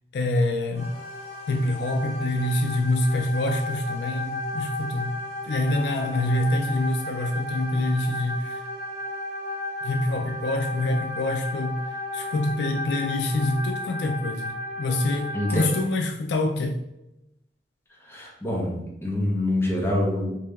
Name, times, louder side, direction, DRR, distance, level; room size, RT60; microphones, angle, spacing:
voice 1, 0.1-0.9 1.5-5.2 5.4-8.6 9.8-11.8 12.1-16.8, left 1 dB, 70° left, 0.3 m, -26 dB
sound 1, 0.7-15.8, left 2 dB, 35° left, 1.1 m, -34 dB
voice 2, 18.1-20.4, left 1 dB, 15° left, 0.9 m, -26 dB
3.2 x 2.8 x 3.4 m
head